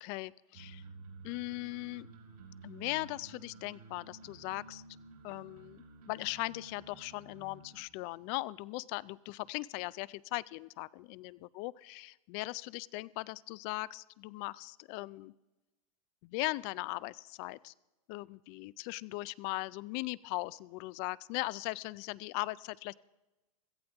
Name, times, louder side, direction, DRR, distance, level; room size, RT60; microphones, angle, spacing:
voice 1, 0.0-0.8 1.2-2.1 2.6-4.8 5.2-15.3 16.2-17.7 18.1-23.0, left 21 dB, 40° left, 21 dB, 0.4 m, -39 dB
sound 1, 0.5-7.8, right 4 dB, 80° right, 5.1 m, -53 dB
17.0 x 14.5 x 3.5 m, 1.0 s
supercardioid pair, 140°, 19 cm